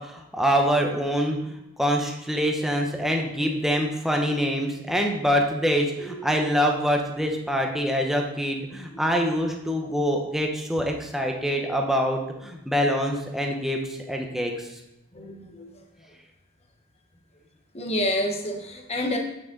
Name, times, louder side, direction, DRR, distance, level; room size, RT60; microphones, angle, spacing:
voice 1, 0.0-14.8, equal, ahead, 2 dB, 0.9 m, -25 dB
voice 2, 5.6-6.2 8.9-9.0 9.3-9.4 9.8-9.9 11.6-11.8 15.1-16.1 17.7-19.2, left 1 dB, 30° left, 3 dB, 1.1 m, -30 dB
8.7 x 6.3 x 3.9 m, 0.90 s
head